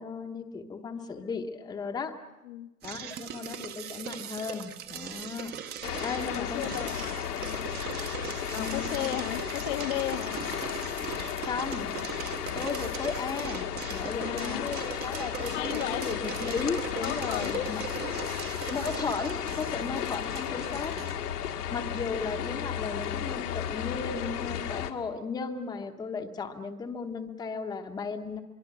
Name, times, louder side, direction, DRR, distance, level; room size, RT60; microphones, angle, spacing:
voice 1, 0.0-2.1 2.8-5.5 6.0-6.7 8.6-9.1 11.4-11.9 12.5-17.8 18.7-20.9 21.5-28.4, left 5 dB, 10° left, 5 dB, 1.0 m, -35 dB
sound 1, 2.8-21.2, right 8 dB, 20° right, 0.9 m, -40 dB
sound 2, 5.8-24.9, left 9 dB, 75° left, 1.9 m, -34 dB
voice 2, 6.2-7.1 7.4-7.7 8.5-10.4 14.2-14.6 15.5-16.1 17.0-17.8, left 14 dB, 50° left, 8 dB, 1.0 m, -35 dB
24.5 x 23.5 x 6.1 m, 1.0 s
hypercardioid pair, 135°, 47 cm